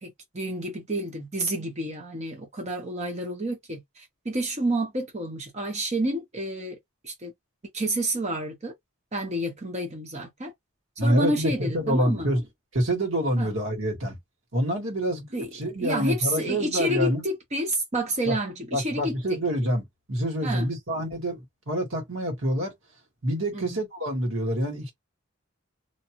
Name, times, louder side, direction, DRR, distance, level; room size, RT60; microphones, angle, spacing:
voice 1, 0.0-6.8 7.0-7.3 7.7-8.7 9.1-10.5 11.0-12.3 13.4-13.5 15.3-15.5 15.8-19.4 20.4-20.7 23.5-23.8, right 1 dB, 30° right, 0.7 m, -29 dB
voice 2, 11.0-12.4 12.7-14.2 14.5-15.3 15.5-17.2 18.2-18.4 18.7-22.7 23.2-24.9, equal, 70° right, 1.5 m, -27 dB
2.6 x 2.3 x 2.9 m
head